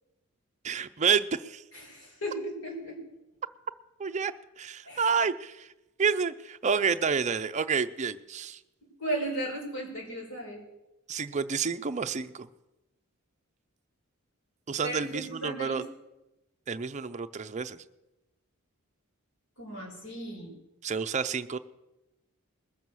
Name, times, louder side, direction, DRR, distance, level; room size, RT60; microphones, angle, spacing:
voice 1, 0.6-1.6 4.0-5.7 6.0-8.6 11.1-12.5 14.7-15.8 16.7-17.8 20.8-21.6, right 6 dB, 35° right, 9 dB, 0.5 m, -29 dB
voice 2, 1.7-3.0 4.8-5.1 9.0-10.6 14.8-15.8 19.6-20.5, right 1 dB, 85° left, -2 dB, 5.0 m, -35 dB
20.5 x 7.1 x 6.2 m, 0.99 s
head